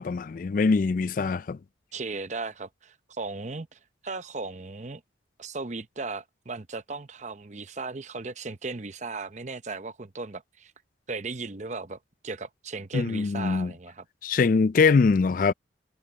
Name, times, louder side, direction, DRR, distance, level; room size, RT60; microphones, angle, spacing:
voice 1, 0.0-1.6 12.9-13.7 14.2-15.5, left 4 dB, 45° left, 0.3 m, -23 dB
voice 2, 1.9-5.0 5.4-10.7 11.1-14.0, right 3 dB, 40° right, 0.7 m, -36 dB
head